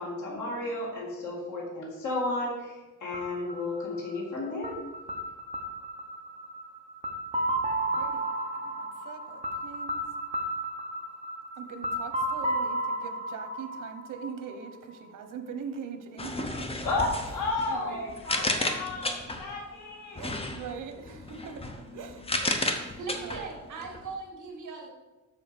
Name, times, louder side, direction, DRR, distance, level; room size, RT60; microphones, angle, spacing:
voice 1, 0.0-4.8 16.8-20.2, left 2 dB, 70° left, -3 dB, 2.0 m, -33 dB
sound 1, 3.1-14.9, right 1 dB, 20° right, 0.8 m, -33 dB
voice 2, 7.8-8.3 8.5-10.1 11.6-16.4 17.2-17.4 17.7-18.5 20.1-22.4 22.7-23.4, right 6 dB, 90° right, 8 dB, 1.0 m, -42 dB
sound 2, 16.2-19.6 20.1-24.1, left 2 dB, 20° left, 0.7 m, -33 dB
voice 3, 23.0-24.9, right 4 dB, 70° right, -4 dB, 1.9 m, -39 dB
7.1 x 6.6 x 5.1 m, 1.2 s
wide cardioid pair, 175°, 31 cm